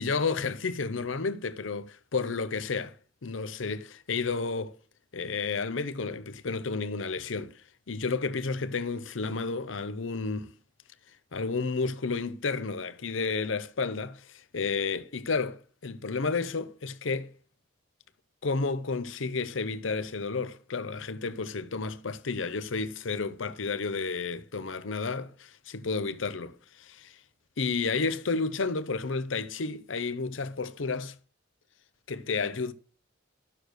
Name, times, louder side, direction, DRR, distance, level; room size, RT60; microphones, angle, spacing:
voice 1, 0.0-3.0 3.2-4.8 5.1-7.6 7.9-10.5 11.3-17.3 18.4-27.2 27.6-31.1 32.1-32.7, left 4 dB, 85° left, 0.8 m, -31 dB
12.5 x 6.5 x 6.5 m
head